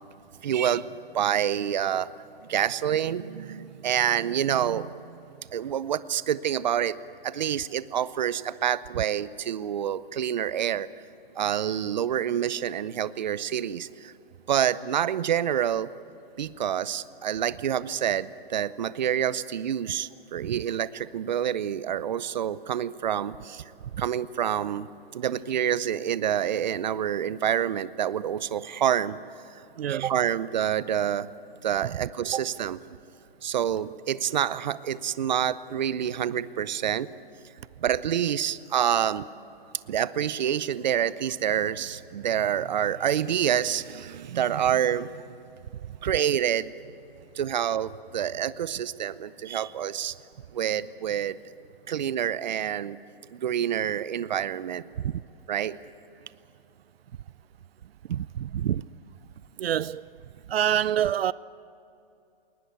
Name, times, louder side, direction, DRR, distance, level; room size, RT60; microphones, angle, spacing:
voice 1, 0.4-2.1 2.5-4.9 5.5-7.0 7.2-10.9 11.4-14.1 14.5-15.9 16.4-23.6 24.0-24.9 25.1-29.2 29.9-31.3 31.6-32.8 33.4-37.1 37.8-39.3 39.9-45.2 46.0-46.7 47.3-50.1 50.5-51.4 51.9-53.0 53.3-54.8 55.5-55.8, right 9 dB, 50° right, 0.7 m, -27 dB
voice 2, 29.8-30.1 32.3-32.4 55.0-55.1 58.1-58.8 59.6-60.0 60.5-61.3, right 10 dB, 90° right, 0.5 m, -26 dB
21.5 x 20.0 x 9.4 m
hypercardioid pair, 165°, 29 cm